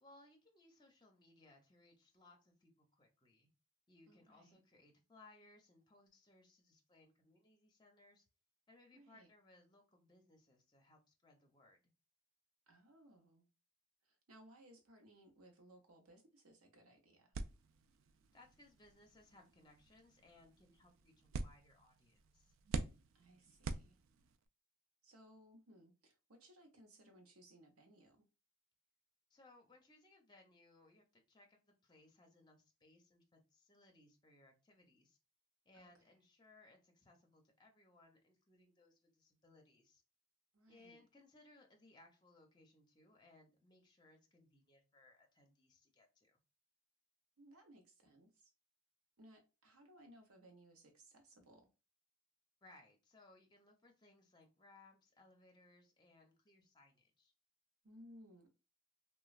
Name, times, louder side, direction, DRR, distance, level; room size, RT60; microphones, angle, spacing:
voice 1, 0.0-3.5 3.9-8.3 8.7-11.8 18.3-22.5 29.3-35.2 35.7-40.0 40.7-46.4 52.6-57.3, left 2 dB, 20° left, 0.6 m, -66 dB
voice 2, 4.1-4.6 8.9-9.3 12.7-13.5 14.0-17.3 23.1-24.0 25.0-28.3 35.7-35.9 40.5-41.1 47.4-48.5 49.2-51.7 57.8-58.5, right 1 dB, 85° right, 0.8 m, -63 dB
sound 1, 17.3-24.5, right 4 dB, 65° right, 0.3 m, -47 dB
3.0 x 2.2 x 2.3 m
head